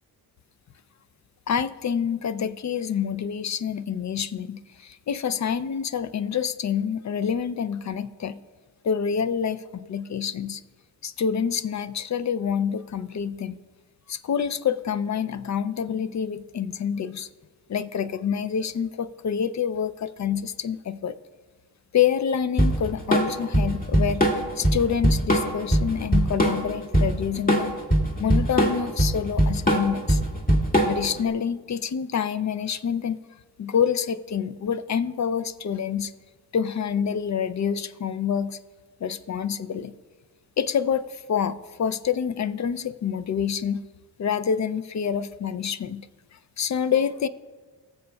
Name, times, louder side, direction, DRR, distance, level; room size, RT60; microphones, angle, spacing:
voice 1, 1.5-8.4 8.8-10.6 11.0-13.6 14.1-17.3 17.7-21.1 21.9-24.2 24.6-27.7 28.2-30.2 30.8-33.2 33.6-36.1 36.5-38.6 39.0-39.9 40.6-43.8 44.2-46.1 46.3-47.3, left 7 dB, 45° left, 14 dB, 0.5 m, -27 dB
Drum kit / Drum, 22.6-31.2, right 1 dB, 20° left, 1.7 m, -21 dB
17.5 x 6.9 x 2.3 m, 1.4 s
cardioid pair, 60°, 42 cm